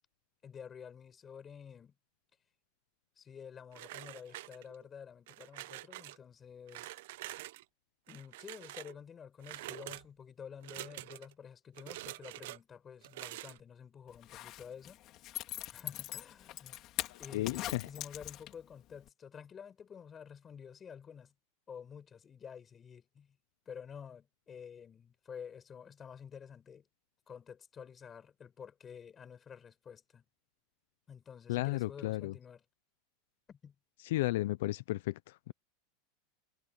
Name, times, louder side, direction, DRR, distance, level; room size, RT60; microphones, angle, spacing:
voice 1, 0.4-1.9 3.2-6.9 8.1-15.0 15.7-16.8 17.2-21.3 21.7-23.4 23.6-26.9 27.3-30.2 31.1-32.6 33.5-33.7, left 7 dB, 25° left, 5.1 m, -50 dB
sound 1, 3.7-4.9 5.3-6.2 6.7-7.6 8.1-9.0 9.4-10.0 10.6-11.3 11.7-12.6 13.0-13.6, right 17 dB, 70° right, 0.9 m, -46 dB
Zipper (clothing), 14.1-18.7 19.1-19.2, left 15 dB, 45° left, 3.6 m, -42 dB
voice 2, 17.1-17.9 31.5-32.3 34.0-35.5, left 17 dB, 75° left, 0.6 m, -34 dB
supercardioid pair, 135°, 0 cm